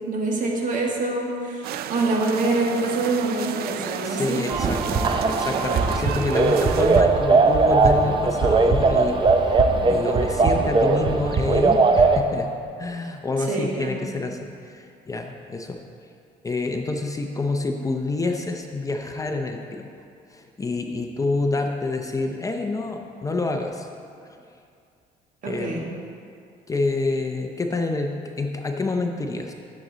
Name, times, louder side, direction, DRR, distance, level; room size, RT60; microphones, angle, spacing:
voice 1, 0.1-4.4 13.5-14.0 25.4-25.8, right 2 dB, 50° right, -1 dB, 1.8 m, -25 dB
sound 1, 1.6-7.0, right 11 dB, 65° right, 0.4 m, -33 dB
voice 2, 4.0-9.2 9.4-9.6 9.9-12.5 12.8-15.8 16.4-19.9 20.3-23.9 25.5-25.9 26.7-29.5, left 3 dB, 20° left, 4 dB, 0.6 m, -27 dB
sound 2, 4.5-12.2, right 3 dB, 30° right, 0.7 m, -19 dB
11.0 x 7.5 x 4.0 m, 2.4 s
cardioid pair, 110°, 17 cm